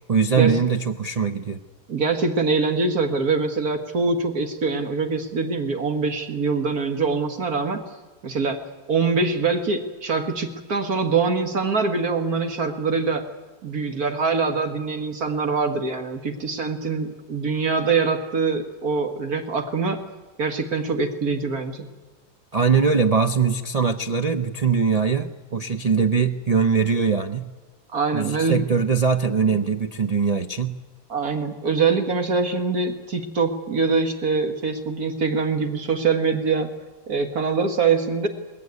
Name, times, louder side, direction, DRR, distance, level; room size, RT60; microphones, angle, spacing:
voice 1, 0.1-1.6 22.5-27.5 28.1-30.8, right 5 dB, 40° right, 8 dB, 0.5 m, -21 dB
voice 2, 1.9-7.8 8.2-8.6 8.9-13.2 13.6-20.0 20.4-21.9 27.9-28.6 31.1-36.7 37.1-38.3, right 4 dB, 60° right, 6 dB, 1.9 m, -24 dB
22.0 x 19.5 x 9.6 m, 1.2 s
omnidirectional pair, 1.8 m